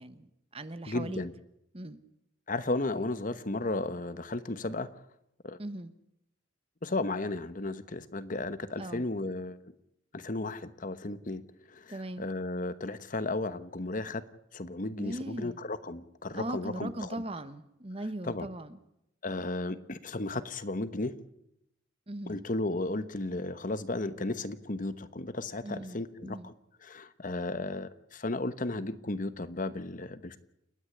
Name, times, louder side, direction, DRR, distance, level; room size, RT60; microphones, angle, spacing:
voice 1, 0.0-1.2 1.7-2.0 5.6-5.9 8.8-9.0 11.9-12.2 15.0-15.6 16.3-18.8 22.1-22.5 25.6-26.5, right 1 dB, 30° right, 12 dB, 1.1 m, -39 dB
voice 2, 0.9-1.3 2.5-4.9 5.4-5.6 6.8-9.6 10.1-11.4 11.7-14.2 14.5-17.1 18.3-18.5 19.2-21.2 22.3-26.5 26.8-30.4, left 2 dB, 45° left, 13 dB, 1.1 m, -34 dB
29.5 x 9.9 x 10.0 m, 0.81 s
head